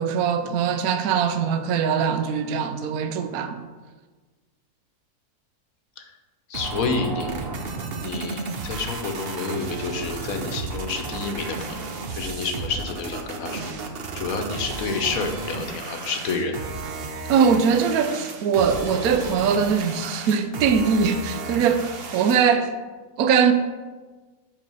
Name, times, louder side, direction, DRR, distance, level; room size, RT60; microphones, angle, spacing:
voice 1, 0.0-3.6 17.3-22.7 23.2-23.5, right 6 dB, 70° right, 1.0 m, -21 dB
voice 2, 6.5-7.3 8.0-11.9 12.2-13.8 14.1-16.6, left 4 dB, 65° left, 1.2 m, -29 dB
sound 1, 6.5-22.5, right 3 dB, 45° right, 0.9 m, -33 dB
7.7 x 4.8 x 5.4 m
omnidirectional pair, 1.7 m